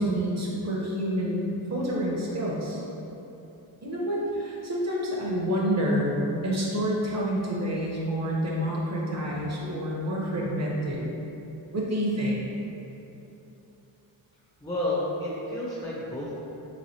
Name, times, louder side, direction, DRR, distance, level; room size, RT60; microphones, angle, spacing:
voice 1, 0.0-2.8 3.8-11.1 11.7-12.4, equal, 35° right, -4 dB, 0.9 m, -28 dB
voice 2, 14.6-16.4, left 1 dB, 10° left, -7 dB, 0.7 m, -30 dB
3.8 x 3.2 x 2.7 m, 3.0 s
cardioid pair, 55°, 49 cm